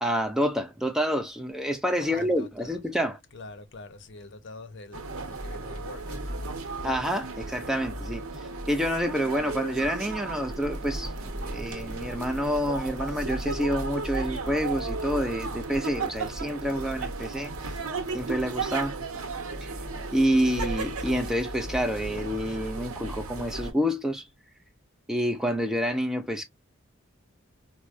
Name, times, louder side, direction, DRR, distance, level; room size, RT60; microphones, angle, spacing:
voice 1, 0.0-3.2 6.8-17.5 18.1-19.0 19.6-19.7 20.1-24.3 25.1-26.4, equal, ahead, 0.3 m, -28 dB
voice 2, 2.0-2.8 3.3-6.3, left 2 dB, 55° left, 0.7 m, -44 dB
sound 1, 4.9-23.7, right 3 dB, 85° right, 0.9 m, -35 dB
sound 2, 10.5-18.8, right 1 dB, 55° right, 0.8 m, -42 dB
4.5 x 2.1 x 2.4 m
head